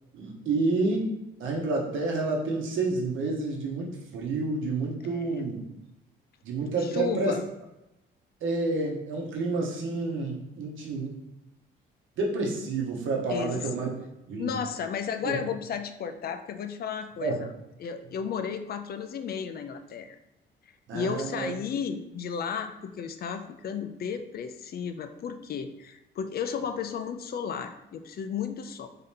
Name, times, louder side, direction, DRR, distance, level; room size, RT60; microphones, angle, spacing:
voice 1, 0.1-1.1 1.4-5.6 6.4-7.4 8.4-11.2 12.2-13.9 14.3-14.5 15.2-15.4 17.2-17.4 20.9-21.5, right 3 dB, 80° right, -1 dB, 1.0 m, -29 dB
voice 2, 6.8-7.4 13.3-13.7 14.4-17.5 17.8-20.2 20.9-28.9, left 7 dB, 50° left, 8 dB, 0.4 m, -33 dB
3.7 x 2.8 x 3.6 m, 0.93 s
cardioid pair, 90°, 20 cm